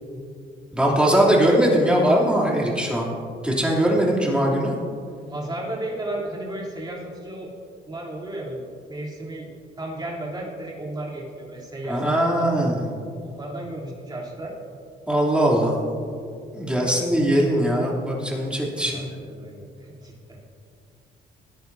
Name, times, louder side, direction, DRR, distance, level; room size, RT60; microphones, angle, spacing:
voice 1, 0.7-3.1 3.4-4.7 11.9-12.8 15.1-15.8 16.5-19.2, right 1 dB, 5° right, -4 dB, 3.1 m, -20 dB
voice 2, 5.3-7.5 7.9-9.5 9.8-12.7 13.2-14.5 16.8-17.1 18.9-20.4, right 1 dB, 20° right, -4 dB, 3.3 m, -34 dB
19.0 x 10.0 x 2.7 m, 2.3 s
cardioid pair, 90°, 20 cm